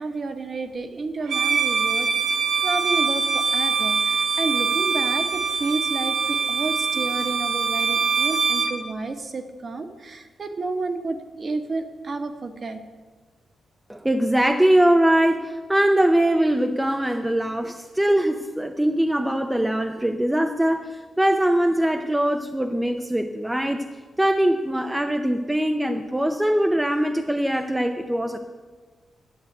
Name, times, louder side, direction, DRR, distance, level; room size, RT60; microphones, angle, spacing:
voice 1, 0.0-2.1 2.6-12.8, right 3 dB, 35° right, 7 dB, 1.1 m, -30 dB
Bowed string instrument, 1.3-8.8, right 5 dB, 80° right, 1.8 m, -23 dB
voice 2, 13.9-23.9 24.2-28.4, right 1 dB, 5° right, 5 dB, 0.5 m, -22 dB
11.0 x 8.0 x 9.1 m, 1.4 s
wide cardioid pair, 150°, 0 cm